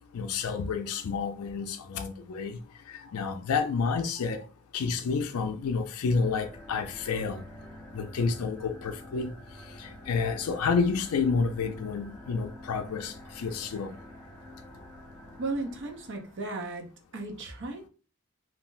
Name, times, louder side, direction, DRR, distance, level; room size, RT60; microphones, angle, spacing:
voice 1, 0.1-2.6 2.9-4.5 4.7-7.4 7.9-9.3 9.7-14.0, left 5 dB, 75° left, 0.4 m, -30 dB
sound 1, 6.1-16.6, left 1 dB, 10° left, 0.7 m, -48 dB
voice 2, 15.4-16.9 17.1-17.9, right 2 dB, 55° right, 0.7 m, -35 dB
2.5 x 2.0 x 3.8 m
head